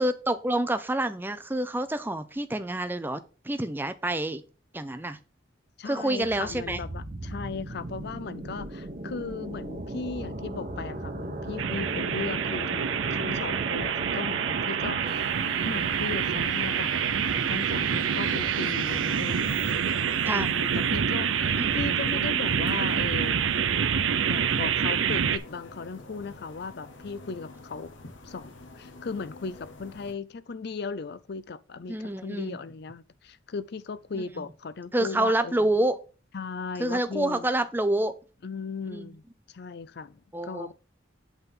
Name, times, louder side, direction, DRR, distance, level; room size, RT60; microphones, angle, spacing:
voice 1, 0.0-4.4 4.7-5.2 5.9-6.8 20.2-20.5 21.6-21.9 31.9-32.6 34.2-34.3 34.9-36.0 36.8-38.1 38.9-39.1 40.3-40.7, right 1 dB, 10° right, 0.5 m, -28 dB
voice 2, 5.8-15.3 15.6-16.9 17.5-19.9 20.3-23.4 24.2-27.9 28.2-35.7 36.3-37.5 38.4-40.7, left 5 dB, 55° left, 0.5 m, -37 dB
sound 1, 6.2-20.0, right 2 dB, 45° right, 1.0 m, -38 dB
sound 2, 11.6-25.4, right 7 dB, 75° right, 0.6 m, -27 dB
sound 3, 15.1-30.1, left 2 dB, 75° left, 1.1 m, -47 dB
8.2 x 3.7 x 5.4 m
head